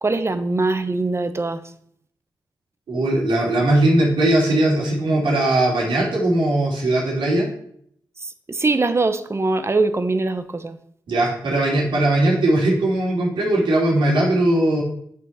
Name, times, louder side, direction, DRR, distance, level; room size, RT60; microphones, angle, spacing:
voice 1, 0.0-1.6 8.2-10.8, right 3 dB, 35° right, 10 dB, 0.9 m, -22 dB
voice 2, 2.9-7.5 11.1-14.8, right 1 dB, 85° right, -3 dB, 2.8 m, -19 dB
8.7 x 6.4 x 4.2 m, 0.66 s
cardioid pair, 50°, 8 cm